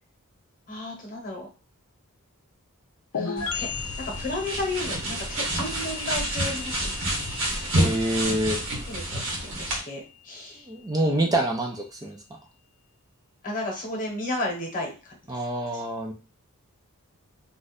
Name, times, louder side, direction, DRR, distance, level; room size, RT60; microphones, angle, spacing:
voice 1, 0.7-1.5 3.1-3.7 4.0-6.9 7.3-7.4 8.9-10.0 10.2-10.6 11.0-11.2 13.4-15.1, left 1 dB, 40° left, 0 dB, 1.0 m, -33 dB
sound 1, 3.1-10.7, left 7 dB, 80° left, 0.5 m, -38 dB
sound 2, 3.4-9.8, right 1 dB, 65° right, 1.1 m, -29 dB
voice 2, 7.7-8.6 10.7-12.2 15.3-16.1, right 1 dB, 15° right, 1 dB, 0.4 m, -26 dB
2.4 x 2.4 x 4.0 m, 0.34 s
head